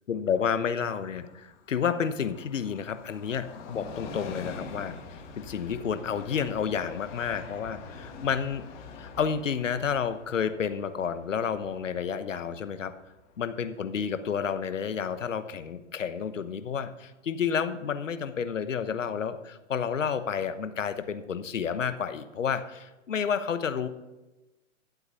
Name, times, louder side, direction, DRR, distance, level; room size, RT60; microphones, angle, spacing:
voice 1, 0.1-8.7 9.0-12.9 13.4-23.9, left 7 dB, 75° left, 11 dB, 1.1 m, -30 dB
Train, 0.9-14.2 14.5-14.6, left 4 dB, 40° left, 2.0 m, -45 dB
12.0 x 8.0 x 5.5 m, 1.1 s
hypercardioid pair, 120°, 38 cm